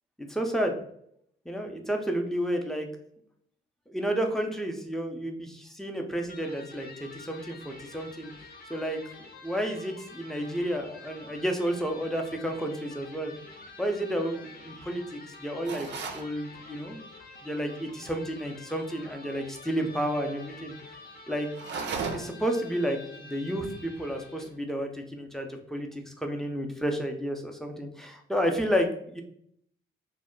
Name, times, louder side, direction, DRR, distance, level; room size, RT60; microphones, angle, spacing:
voice 1, 0.2-0.8 1.5-2.9 3.9-8.3 8.7-9.0 9.4-13.3 13.8-15.0 15.4-15.9 16.1-17.1 17.4-20.7 21.3-21.5 22.1-29.2, equal, ahead, 3 dB, 0.6 m, -31 dB
Electric guitar, 6.2-24.6, left 3 dB, 45° left, 0.7 m, -48 dB
sound 1, 15.6-16.3 21.5-22.5, right 5 dB, 60° right, 0.4 m, -34 dB
2.1 x 2.0 x 3.7 m, 0.68 s
supercardioid pair, 60°, 21 cm